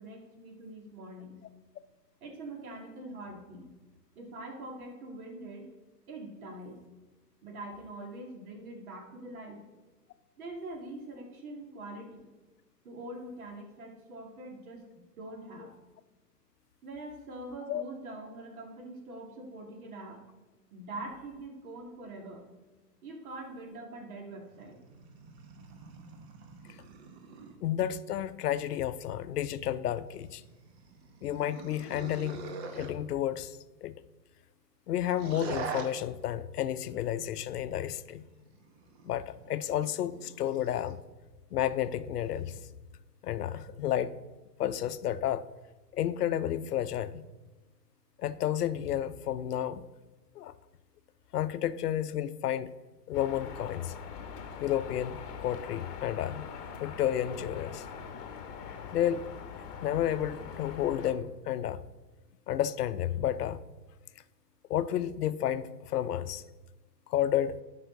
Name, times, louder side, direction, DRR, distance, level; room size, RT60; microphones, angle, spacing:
voice 1, 0.0-1.4 2.2-3.7 4.2-5.7 6.1-6.8 7.4-9.6 10.4-12.3 12.8-15.7 16.8-20.3 20.7-22.5 23.0-24.8, right 2 dB, 55° right, 2.3 m, -44 dB
sound 1, 24.4-27.6 30.1-32.9 35.1-35.9 38.0-41.0 42.2-42.6, right 5 dB, 40° right, 1.0 m, -44 dB
voice 2, 27.6-30.4 31.2-32.4 32.7-34.0 34.9-38.2 39.0-41.0 41.5-42.6 43.2-44.1 44.6-45.4 45.9-47.3 48.2-49.8 50.4-50.5 51.3-52.7 53.1-53.9 54.6-56.5 56.8-57.8 58.9-59.2 59.8-61.8 62.5-63.6 64.7-66.4 67.1-67.6, left 11 dB, 65° left, 0.6 m, -31 dB
sound 2, 53.1-61.1, left 7 dB, 35° left, 1.2 m, -43 dB
12.5 x 5.6 x 3.9 m
hypercardioid pair, 140°, 50 cm